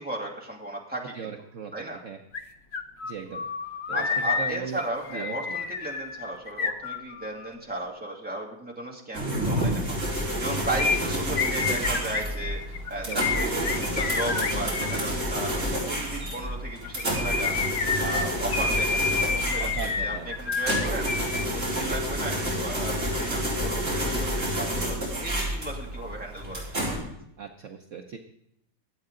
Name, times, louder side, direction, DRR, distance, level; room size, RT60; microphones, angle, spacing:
voice 1, 0.0-1.3 1.7-2.0 3.9-26.6, right 1 dB, 5° right, -2 dB, 2.1 m, -35 dB
voice 2, 1.1-2.2 3.0-3.4 3.9-4.8 5.1-5.4 13.0-13.2 19.6-20.3 27.4-28.2, right 7 dB, 60° right, 3 dB, 0.8 m, -38 dB
sound 1, 2.3-2.4 2.7-7.5 10.8-15.0 16.8-21.5 21.7-21.8, left 5 dB, 55° left, 0.7 m, -29 dB
sound 2, 9.1-27.0, equal, 35° right, 4.6 m, -29 dB
24.0 x 8.5 x 3.8 m, 0.78 s
omnidirectional pair, 2.3 m